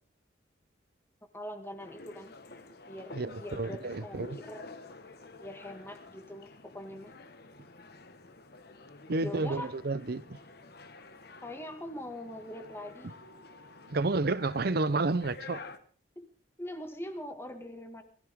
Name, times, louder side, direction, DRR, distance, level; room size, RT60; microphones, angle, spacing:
voice 1, 1.3-2.3 2.7-4.7 5.4-7.1 9.2-9.7 11.4-13.1 16.2-16.3 16.6-18.0, left 1 dB, 15° left, 2.0 m, -42 dB
sound 1, 1.8-15.8, left 3 dB, 55° left, 1.5 m, -50 dB
voice 2, 3.1-4.4 9.1-10.4 13.9-15.6, right 3 dB, 55° right, 0.7 m, -30 dB
21.5 x 15.0 x 3.7 m
head